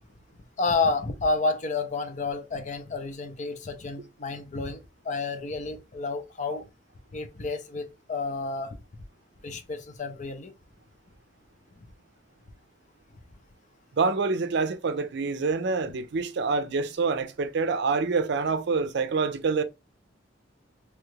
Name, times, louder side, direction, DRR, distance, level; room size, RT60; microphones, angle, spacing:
voice 1, 0.6-4.8 5.0-6.7 7.1-8.8 9.4-10.5, left 3 dB, 40° left, 0.6 m, -30 dB
voice 2, 14.0-19.6, right 4 dB, 65° right, 0.5 m, -26 dB
3.0 x 2.4 x 3.1 m
head